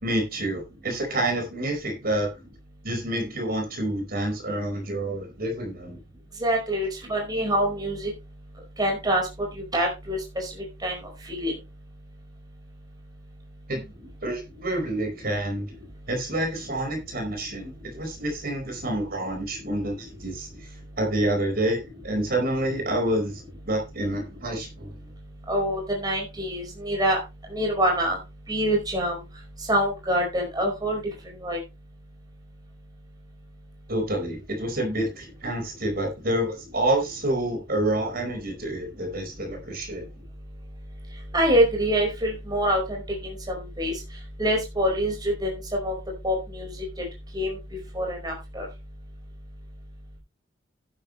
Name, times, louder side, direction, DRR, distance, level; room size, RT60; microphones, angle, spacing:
voice 1, 0.0-2.3 2.8-6.0 13.7-13.8 14.2-15.7 16.1-25.0 33.9-40.1, right 1 dB, 50° right, 3 dB, 4.7 m, -28 dB
voice 2, 6.4-8.1 8.8-9.3 9.5-10.5 10.8-11.0 11.3-11.5 25.5-27.2 27.5-28.2 28.5-29.2 29.7-31.0 31.4-31.6 41.3-43.9 44.4-45.9 46.2-46.8 47.3-47.6 47.9-48.6, equal, 20° right, 0 dB, 4.8 m, -25 dB
11.5 x 11.0 x 3.2 m, 0.26 s
head